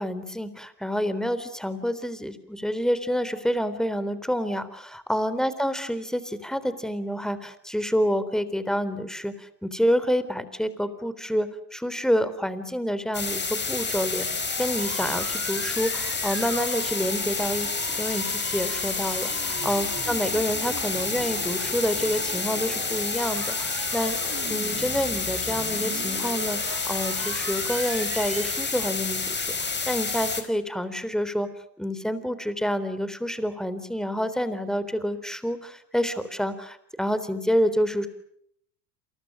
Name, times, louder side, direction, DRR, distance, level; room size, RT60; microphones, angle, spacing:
voice 1, 0.0-14.2 14.6-24.2 24.5-31.5 31.8-38.1, equal, ahead, 13 dB, 3.7 m, -28 dB
sound 1, 13.1-30.4, left 4 dB, 20° left, 5.0 m, -29 dB
sound 2, 14.2-29.1, right 4 dB, 25° right, 7.0 m, -40 dB
29.0 x 28.5 x 6.4 m, 0.69 s
hypercardioid pair, 80°, 50 cm